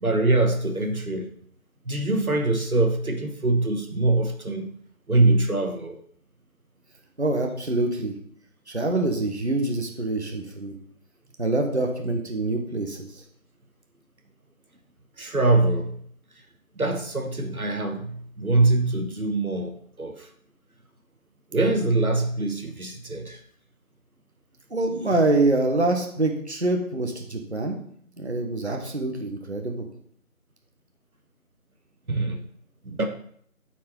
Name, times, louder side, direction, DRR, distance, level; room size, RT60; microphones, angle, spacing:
voice 1, 0.0-1.3 1.8-4.7 5.1-6.0 15.2-16.0 16.8-20.3 21.5-23.4 32.1-32.4 32.8-33.1, right 2 dB, 85° right, 5 dB, 1.2 m, -23 dB
voice 2, 7.2-8.1 8.7-10.8 11.4-13.2 24.7-27.8 28.2-29.9, right 2 dB, 50° right, 2 dB, 1.2 m, -25 dB
7.0 x 4.8 x 4.4 m, 0.63 s
figure-of-eight pair, 175°, 42 cm